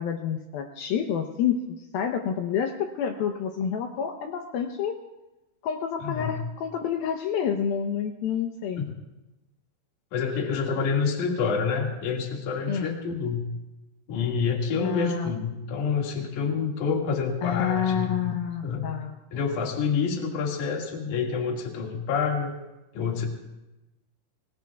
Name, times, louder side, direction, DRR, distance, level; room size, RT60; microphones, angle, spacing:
voice 1, 0.0-1.6 1.9-5.0 5.6-8.9 12.7-12.9 14.8-15.3 17.4-19.2, left 8 dB, 75° left, 4 dB, 2.3 m, -28 dB
voice 2, 6.0-6.4 10.1-13.5 14.1-18.3 18.6-18.9 19.3-22.6 22.9-23.3, left 5 dB, 50° left, 0 dB, 3.0 m, -27 dB
28.0 x 20.5 x 2.4 m, 1.0 s
omnidirectional pair, 5.1 m